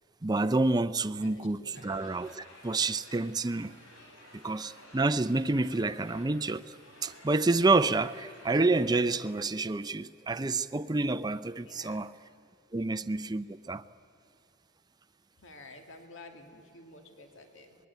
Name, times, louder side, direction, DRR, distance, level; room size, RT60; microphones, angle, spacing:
voice 1, 0.2-3.7 4.3-6.7 7.0-12.1 12.7-13.8, right 3 dB, 20° right, 0.5 m, -28 dB
voice 2, 1.2-1.8 11.6-12.0 15.4-17.8, left 2 dB, 65° left, 2.5 m, -51 dB
sound 1, 1.7-9.3, left 1 dB, 80° left, 7.3 m, -54 dB
25.0 x 21.0 x 9.4 m
head